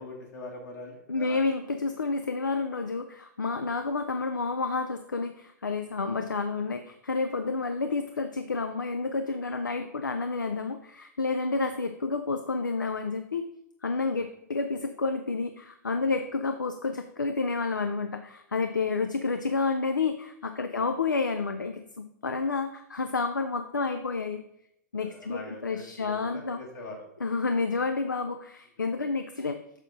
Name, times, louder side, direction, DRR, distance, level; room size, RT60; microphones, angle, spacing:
voice 1, 0.0-1.5 5.9-6.0 14.1-14.2 16.0-16.2 20.7-20.8 25.0-27.1, left 2 dB, 70° left, -2 dB, 1.7 m, -43 dB
voice 2, 1.1-13.5 13.8-24.4 24.9-26.6 27.2-29.6, left 4 dB, 90° left, 7 dB, 0.5 m, -30 dB
6.5 x 6.3 x 3.8 m, 0.74 s
figure-of-eight pair, 110°, 10 cm